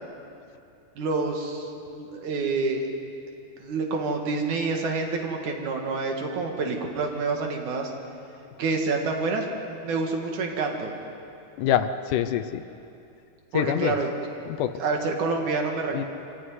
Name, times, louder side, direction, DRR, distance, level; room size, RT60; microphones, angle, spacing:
voice 1, 1.0-2.9 3.6-7.9 8.6-10.9 13.5-14.1 14.8-16.0, right 3 dB, 65° right, 2 dB, 3.2 m, -28 dB
voice 2, 11.6-12.6 13.5-14.0 14.5-14.7 15.9-16.0, left 10 dB, 75° left, 10 dB, 2.2 m, -25 dB
24.5 x 15.0 x 9.6 m, 2.6 s
omnidirectional pair, 3.9 m